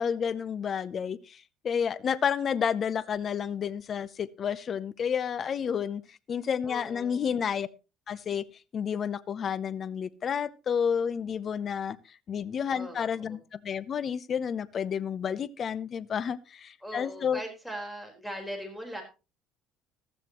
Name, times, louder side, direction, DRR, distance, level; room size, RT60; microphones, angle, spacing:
voice 1, 0.0-7.7 8.1-8.4 8.7-12.0 12.3-17.4, left 7 dB, 40° left, 18 dB, 0.7 m, -30 dB
voice 2, 6.6-7.4 12.7-13.4 16.8-19.0, equal, 5° left, 4 dB, 4.3 m, -40 dB
15.0 x 13.0 x 3.0 m, 0.29 s
cardioid pair, 125°, 0 cm